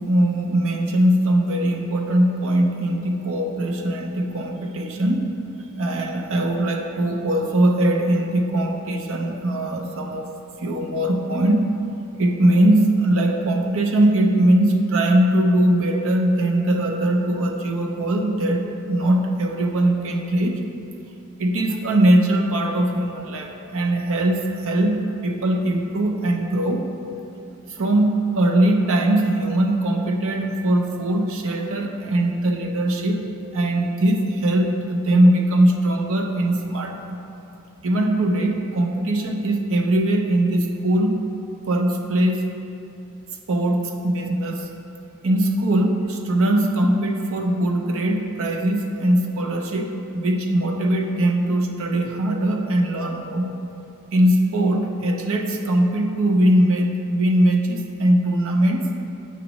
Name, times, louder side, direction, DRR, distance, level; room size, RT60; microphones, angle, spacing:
voice 1, 0.0-5.3 5.7-10.3 10.6-11.7 12.2-20.6 21.4-26.8 27.7-33.2 33.5-37.2 37.8-41.2 41.7-42.4 43.5-44.7 45.2-53.6 54.1-58.9, right 1 dB, 65° right, 3 dB, 0.6 m, -21 dB
8.0 x 6.1 x 3.0 m, 2.8 s
head